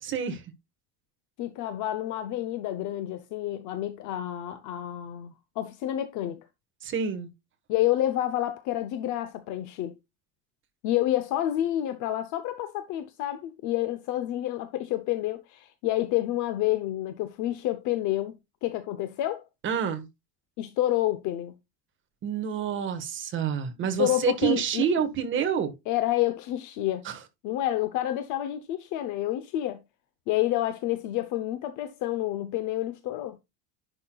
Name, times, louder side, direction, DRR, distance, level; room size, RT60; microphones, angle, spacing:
voice 1, 0.0-0.4 6.8-7.3 19.6-20.0 22.2-25.7 27.0-27.2, right 8 dB, 25° right, 1.4 m, -28 dB
voice 2, 1.4-6.4 7.7-10.0 10.8-18.4 18.6-19.5 20.6-21.5 24.0-24.9 25.9-27.1 27.4-29.8 30.3-33.4, left 14 dB, 40° left, 0.7 m, -29 dB
10.5 x 5.9 x 2.3 m
cardioid pair, 180°, 45 cm